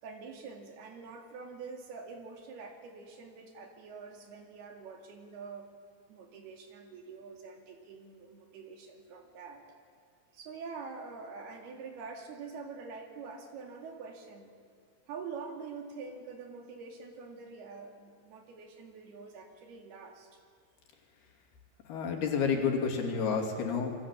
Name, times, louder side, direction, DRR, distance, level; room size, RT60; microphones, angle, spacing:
voice 1, 0.0-5.7 6.1-9.8 10.3-14.5 15.1-20.4, right 5 dB, 80° right, 3 dB, 4.5 m, -45 dB
voice 2, 21.9-24.0, left 6 dB, 80° left, 2 dB, 4.6 m, -30 dB
27.0 x 22.0 x 7.5 m, 2.1 s
omnidirectional pair, 4.5 m